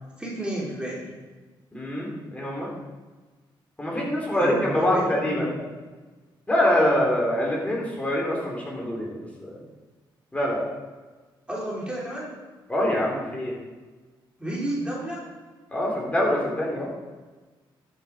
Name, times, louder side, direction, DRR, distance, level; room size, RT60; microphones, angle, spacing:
voice 1, 0.2-1.2 4.3-5.8 11.5-12.3 14.4-15.2, right 1 dB, 10° right, -5 dB, 3.2 m, -32 dB
voice 2, 1.7-2.7 3.8-5.5 6.5-9.5 10.3-10.6 12.7-13.5 15.7-16.9, left 1 dB, 15° left, -3 dB, 3.6 m, -24 dB
12.5 x 6.3 x 5.0 m, 1.3 s
cardioid pair, 90°, 9 cm